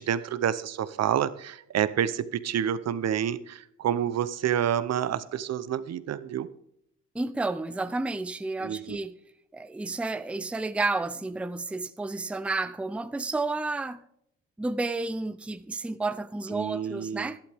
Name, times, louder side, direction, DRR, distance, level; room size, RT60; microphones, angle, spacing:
voice 1, 0.0-6.5 8.6-9.0 16.5-17.3, right 9 dB, 60° right, 0.8 m, -28 dB
voice 2, 7.1-9.1 9.5-14.0 14.6-17.4, right 3 dB, 5° right, 0.5 m, -31 dB
11.5 x 11.5 x 3.5 m
cardioid pair, 90°, 30 cm